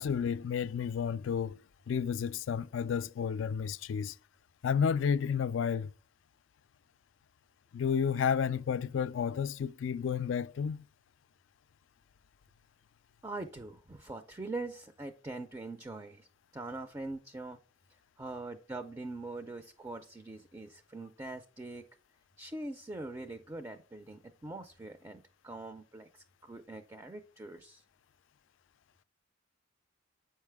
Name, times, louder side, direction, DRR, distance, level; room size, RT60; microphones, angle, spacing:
voice 1, 0.0-1.6 1.9-4.1 4.6-5.9 7.7-10.8, left 7 dB, 65° left, 0.3 m, -31 dB
voice 2, 13.2-16.3 16.5-17.6 18.2-21.9 22.4-27.8, right 2 dB, 15° right, 0.4 m, -43 dB
8.1 x 5.6 x 3.4 m
head